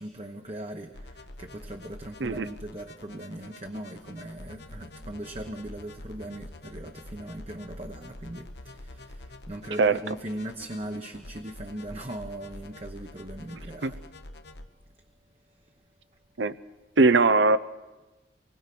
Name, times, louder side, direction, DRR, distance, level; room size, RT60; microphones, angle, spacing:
voice 1, 0.0-14.0, right 1 dB, 35° right, 4 dB, 0.9 m, -39 dB
sound 1, 0.9-14.6, left 1 dB, 65° left, 1.1 m, -46 dB
voice 2, 17.0-17.6, right 3 dB, 80° right, 14 dB, 0.7 m, -20 dB
25.0 x 19.5 x 6.1 m, 1.2 s
head